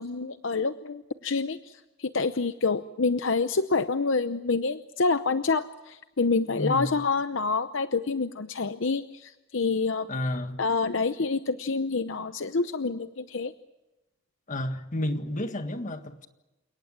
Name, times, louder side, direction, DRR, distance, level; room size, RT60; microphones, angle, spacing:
voice 1, 0.0-10.1 10.6-13.5, left 4 dB, 65° left, 0.8 m, -27 dB
voice 2, 6.5-6.9 10.1-10.6 14.5-16.3, left 1 dB, 40° left, 1.7 m, -31 dB
29.0 x 18.0 x 7.6 m
head